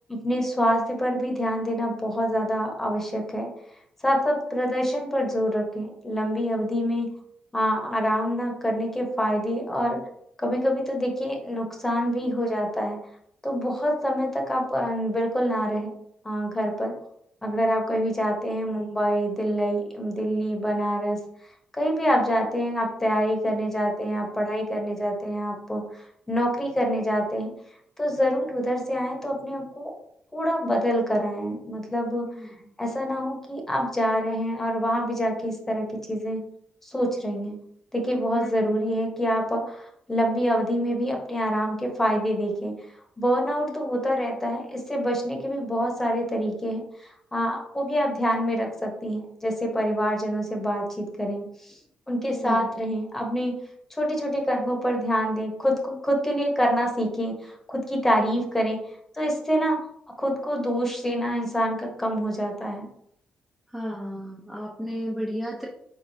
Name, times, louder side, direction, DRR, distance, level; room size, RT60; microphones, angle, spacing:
voice 1, 0.1-3.5 4.0-7.1 7.5-10.0 10.4-13.0 13.4-15.9 16.2-16.9 17.4-21.2 21.7-27.5 28.0-29.9 30.3-32.3 32.8-36.4 36.8-37.6 37.9-42.7 43.2-51.7 52.1-53.6 54.0-58.8 59.1-59.8 60.2-62.9, equal, 15° left, 1 dB, 1.1 m, -26 dB
voice 2, 32.2-32.5 38.4-38.7 52.3-52.6 63.7-65.7, equal, 5° right, -4 dB, 0.7 m, -33 dB
4.8 x 3.8 x 2.7 m, 0.72 s
cardioid pair, 115°, 3 cm